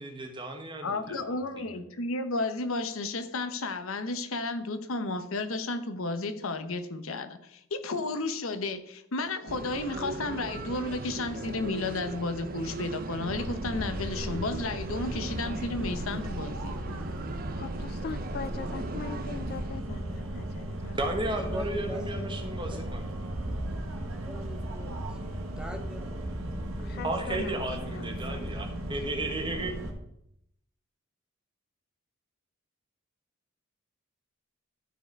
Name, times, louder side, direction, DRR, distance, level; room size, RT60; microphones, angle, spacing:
voice 1, 0.0-1.7 21.0-23.1 27.0-29.7, right 2 dB, 25° right, 4 dB, 1.3 m, -34 dB
voice 2, 0.8-16.8, left 2 dB, 70° left, 10 dB, 0.9 m, -33 dB
sound 1, 9.5-19.8, right 3 dB, 45° right, 0.6 m, -39 dB
sound 2, 13.2-29.9, right 1 dB, 75° right, 1.5 m, -36 dB
voice 3, 17.5-21.1 21.5-21.8 26.8-27.6 27.9-28.4 28.7-28.8, left 5 dB, 45° left, 13 dB, 0.3 m, -41 dB
voice 4, 21.4-22.4 22.7-22.8 24.3-27.1, equal, 5° right, 6 dB, 0.8 m, -44 dB
13.0 x 4.7 x 4.6 m, 0.78 s
head